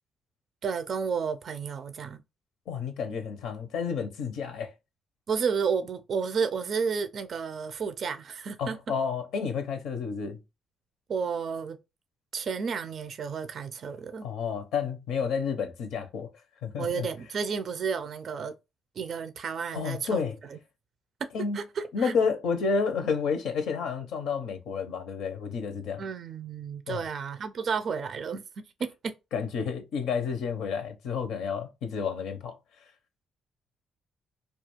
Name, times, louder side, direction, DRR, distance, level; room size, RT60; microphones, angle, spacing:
voice 1, 0.6-2.2 5.3-8.8 11.1-11.8 12.3-14.3 16.8-18.5 19.0-20.6 21.2-21.3 21.5-22.1 26.0-29.1, right 6 dB, 55° right, 0.4 m, -32 dB
voice 2, 2.7-4.7 8.6-10.4 14.2-16.3 16.6-17.1 19.7-20.4 21.3-21.6 21.9-26.0 26.9-27.0 29.3-32.6, left 6 dB, 85° left, 0.6 m, -30 dB
2.4 x 2.3 x 2.9 m
cardioid pair, 90°, 0 cm